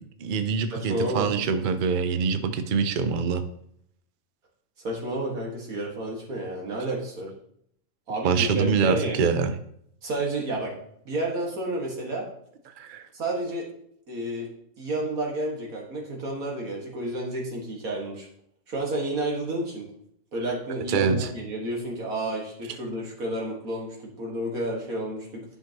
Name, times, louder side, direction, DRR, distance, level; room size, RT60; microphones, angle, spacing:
voice 1, 0.2-3.4 8.2-9.5 12.8-13.1 20.9-21.3, right 5 dB, 50° right, 9 dB, 0.6 m, -24 dB
voice 2, 0.7-1.3 4.8-7.3 8.1-9.3 10.0-10.7 11.1-12.3 13.1-13.7 14.1-14.5 14.8-18.3 18.7-19.9 20.3-25.5, right 1 dB, 90° right, -2 dB, 2.2 m, -30 dB
10.5 x 5.9 x 2.9 m, 0.69 s
omnidirectional pair, 1.4 m